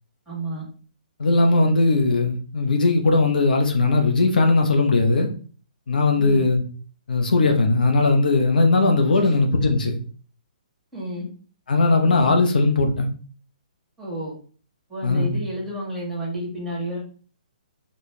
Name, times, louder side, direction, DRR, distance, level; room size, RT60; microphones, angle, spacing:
voice 1, 0.3-0.6 6.2-6.4 9.2-9.3 10.9-11.3 14.0-14.3 14.9-17.0, equal, ahead, -8 dB, 1.8 m, -31 dB
voice 2, 1.2-5.3 5.9-6.6 7.1-10.0 11.7-13.1 15.0-15.4, left 3 dB, 80° left, 4 dB, 1.0 m, -19 dB
4.4 x 3.0 x 3.3 m, 0.40 s
hypercardioid pair, 175°, 5 cm